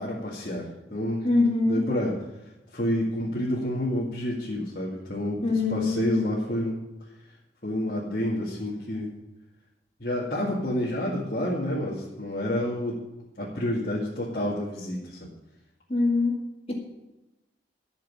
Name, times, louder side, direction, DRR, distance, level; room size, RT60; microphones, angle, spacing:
voice 1, 0.0-1.3 1.7-2.1 2.7-6.8 7.6-9.1 10.0-13.0 13.4-15.2, left 1 dB, 50° left, -7 dB, 2.1 m, -29 dB
voice 2, 1.2-1.8 5.4-6.2 15.9-16.4 16.7-16.8, left 3 dB, 35° left, 0 dB, 2.0 m, -23 dB
11.5 x 6.7 x 8.5 m, 0.99 s
head